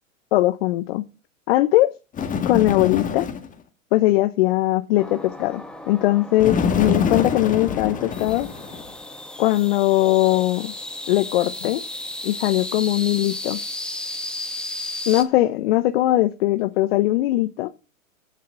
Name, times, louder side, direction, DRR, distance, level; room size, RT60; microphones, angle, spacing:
voice 1, 0.3-1.0 1.5-1.9 2.4-3.3 3.9-8.5 9.4-10.7 11.1-11.8 12.2-13.6 15.1-17.7, left 16 dB, 50° left, 0.9 m, -20 dB
Bird, 2.1-3.5 6.4-8.9, left 6 dB, 20° left, 1.8 m, -25 dB
sound 1, 5.0-15.2, left 1 dB, ahead, 1.3 m, -34 dB
11.5 x 5.6 x 7.6 m
hypercardioid pair, 110°, 40 cm